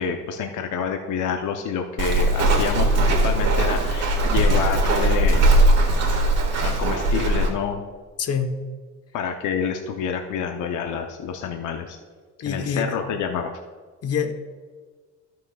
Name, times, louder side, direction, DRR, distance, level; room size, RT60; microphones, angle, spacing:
voice 1, 0.0-5.5 6.6-7.8 9.1-12.0 12.5-13.5, left 7 dB, 85° left, 4 dB, 0.7 m, -28 dB
Walk footsteps, 2.0-7.5, right 1 dB, 60° right, 1.8 m, -19 dB
voice 2, 8.2-8.5 12.4-12.9 14.0-14.3, left 6 dB, 55° left, 6 dB, 1.1 m, -25 dB
15.0 x 6.3 x 2.3 m, 1.5 s
cardioid pair, 90°, 30 cm